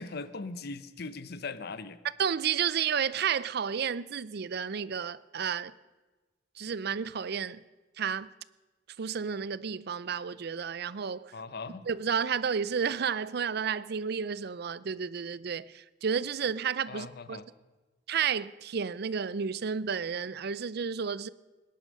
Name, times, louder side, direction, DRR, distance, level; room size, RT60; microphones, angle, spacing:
voice 1, 0.0-2.0 11.3-11.9 16.9-17.5, left 3 dB, 60° left, 0.8 m, -39 dB
voice 2, 2.2-5.7 6.6-7.6 8.0-8.3 9.0-11.3 11.9-17.4 18.1-21.3, right 7 dB, 60° right, 0.5 m, -31 dB
19.5 x 10.5 x 6.5 m
head